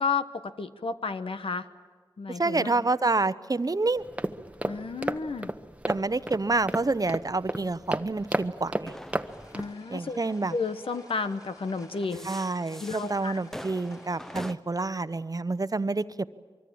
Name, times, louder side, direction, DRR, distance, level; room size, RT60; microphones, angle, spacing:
voice 1, 0.0-1.7 2.2-2.9 4.6-5.5 9.5-10.2 10.5-12.3 12.8-13.4, left 4 dB, 80° left, 10 dB, 1.1 m, -32 dB
voice 2, 2.4-4.0 5.9-8.9 9.9-10.5 12.2-16.2, right 3 dB, 40° right, 14 dB, 0.8 m, -28 dB
sound 1, 4.0-9.7, right 1 dB, 15° right, 1.1 m, -33 dB
sound 2, 8.2-10.9 11.8-14.5, equal, 5° left, 0.8 m, -44 dB
sound 3, 9.3-14.6, left 1 dB, 40° left, 5.4 m, -52 dB
24.5 x 23.5 x 8.7 m, 1.5 s
cardioid pair, 45°, 9 cm